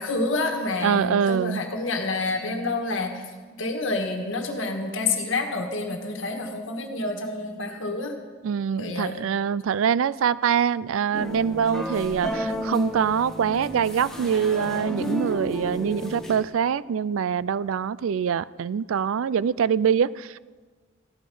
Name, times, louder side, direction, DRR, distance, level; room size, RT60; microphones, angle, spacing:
voice 1, 0.0-3.2 3.6-8.1 8.8-9.2, left 3 dB, 70° left, 4 dB, 1.5 m, -28 dB
voice 2, 0.8-1.6 8.4-20.4, right 7 dB, 80° right, 19 dB, 0.4 m, -24 dB
sound 1, 11.1-16.5, equal, 5° left, 1.5 m, -32 dB
15.5 x 12.5 x 5.4 m, 1.4 s
head